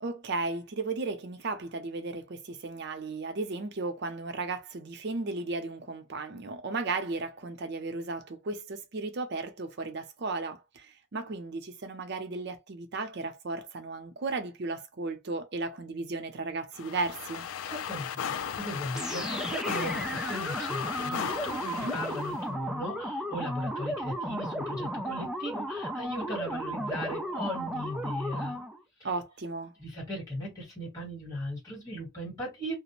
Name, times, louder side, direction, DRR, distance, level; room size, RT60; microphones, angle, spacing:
voice 1, 0.0-17.5 21.6-22.0 29.0-29.7, right 3 dB, 55° right, 0.6 m, -35 dB
sound 1, 16.7-22.4, left 8 dB, 90° left, 0.3 m, -36 dB
voice 2, 17.6-28.6 29.8-32.8, equal, 15° left, 1.5 m, -37 dB
sound 2, 18.9-28.8, equal, 5° right, 0.3 m, -34 dB
2.4 x 2.1 x 2.9 m
head